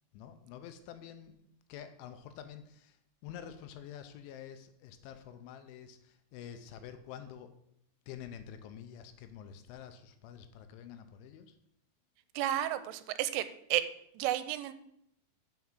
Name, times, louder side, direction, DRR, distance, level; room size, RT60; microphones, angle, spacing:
voice 1, 0.1-1.4 1.7-3.0 3.2-7.5 8.1-11.5, left 9 dB, 85° left, 8 dB, 3.0 m, -48 dB
voice 2, 12.4-13.4 13.7-13.8 14.2-14.7, right 13 dB, 85° right, 12 dB, 3.1 m, -31 dB
7.3 x 5.9 x 7.2 m, 0.75 s
omnidirectional pair, 5.6 m